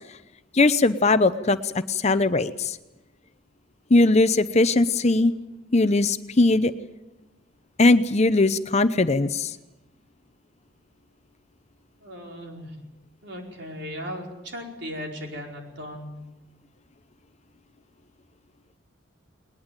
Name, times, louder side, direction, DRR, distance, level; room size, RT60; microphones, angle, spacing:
voice 1, 0.5-2.8 3.9-5.3 5.7-6.7 7.8-9.6, left 2 dB, 35° left, 12 dB, 0.7 m, -20 dB
voice 2, 12.0-12.8 13.2-16.2, equal, 55° right, 1 dB, 4.9 m, -37 dB
20.5 x 20.5 x 9.0 m, 1.0 s
head